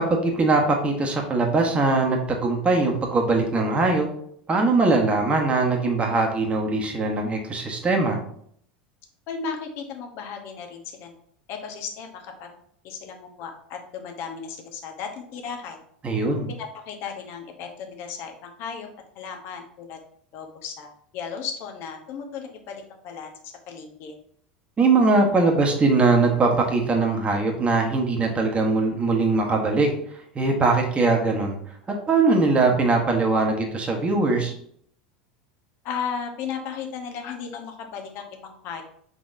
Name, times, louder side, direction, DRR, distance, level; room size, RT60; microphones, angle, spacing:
voice 1, 0.0-4.1 4.5-8.2 16.0-16.5 24.8-29.9 30.3-31.6 32.1-34.5, right 3 dB, 25° right, 1 dB, 1.1 m, -21 dB
voice 2, 9.3-11.1 11.5-12.5 12.8-15.8 16.6-18.9 19.1-20.0 20.3-23.3 23.7-24.1 35.8-38.8, left 6 dB, 50° left, 4 dB, 0.9 m, -35 dB
4.8 x 4.0 x 2.6 m, 0.65 s
hypercardioid pair, 80°, 5 cm